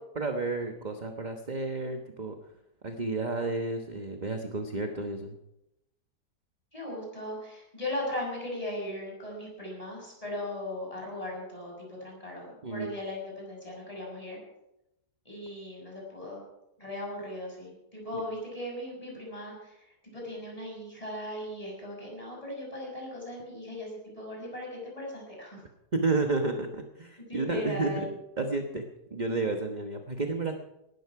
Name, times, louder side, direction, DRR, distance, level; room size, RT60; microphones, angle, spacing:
voice 1, 0.2-2.4 2.8-5.3 12.6-12.9 25.9-28.1 28.4-30.5, right 3 dB, 30° right, 5 dB, 1.2 m, -31 dB
voice 2, 6.7-14.4 15.2-16.4 16.8-25.6 27.3-28.1, left 1 dB, 20° left, -2 dB, 6.6 m, -38 dB
18.5 x 13.5 x 4.8 m, 0.87 s
omnidirectional pair, 1.7 m